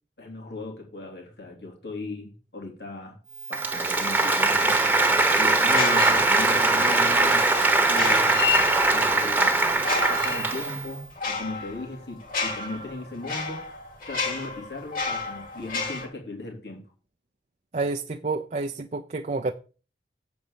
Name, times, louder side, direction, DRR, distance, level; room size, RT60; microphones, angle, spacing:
voice 1, 0.2-3.2 3.5-4.8 5.3-8.4 8.8-9.8 10.1-13.7 14.1-16.8, left 2 dB, 70° left, 3.3 m, -37 dB
Applause, 3.4-10.9, right 2 dB, 10° right, 1.1 m, -21 dB
sound 1, 5.8-6.7 7.9-9.1 9.8-16.1, left 4 dB, 50° left, 3.0 m, -31 dB
voice 2, 17.7-19.5, right 3 dB, 40° right, 0.6 m, -29 dB
8.1 x 5.1 x 7.3 m
head